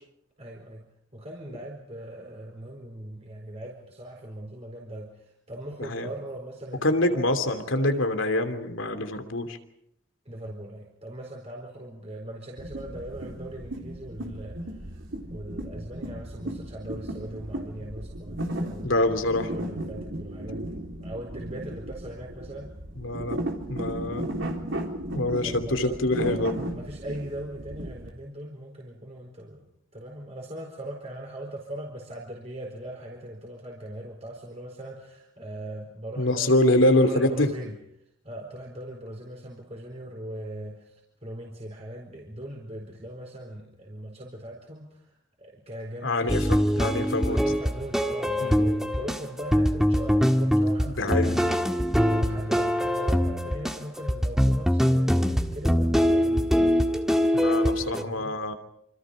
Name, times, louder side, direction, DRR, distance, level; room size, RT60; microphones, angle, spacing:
voice 1, 0.4-0.8 1.1-8.0 10.3-15.0 15.3-22.7 25.4-29.7 29.9-37.8 38.2-46.7 47.3-51.3 51.7-56.8 58.0-58.3, right 1 dB, 35° right, -1 dB, 4.4 m, -40 dB
voice 2, 6.8-9.6 18.8-19.5 23.0-23.4 23.7-24.3 25.1-26.5 36.2-37.5 46.0-47.4 48.4-48.7 50.8-51.5 57.3-58.5, left 1 dB, 90° left, 7 dB, 2.9 m, -25 dB
sound 1, 12.6-28.1, right 1 dB, 80° right, 3.7 m, -35 dB
sound 2, 46.3-58.0, equal, ahead, 1.7 m, -23 dB
27.5 x 26.5 x 5.1 m, 0.75 s
head